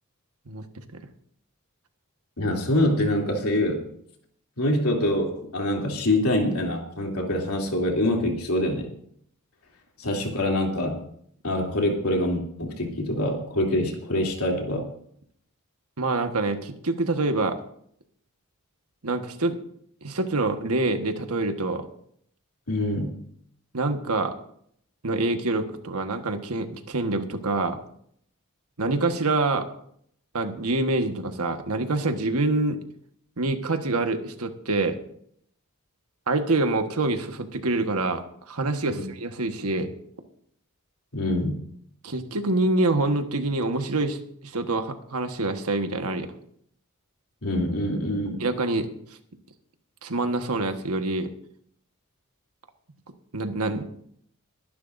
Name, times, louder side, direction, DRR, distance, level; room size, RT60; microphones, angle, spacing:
voice 1, 2.4-3.9 4.6-8.9 10.0-11.0 11.4-14.8 22.7-23.2 38.9-39.0 41.1-41.6 47.4-48.4, left 1 dB, 75° left, 0 dB, 3.0 m, -25 dB
voice 2, 16.0-17.6 19.0-19.6 20.0-21.9 23.7-24.3 25.0-27.8 28.8-29.7 30.3-32.8 33.4-35.0 36.3-39.9 42.0-46.3 48.4-48.9 50.0-51.3 53.3-53.8, right 2 dB, 80° right, 6 dB, 1.4 m, -26 dB
23.0 x 11.0 x 2.6 m, 0.66 s
head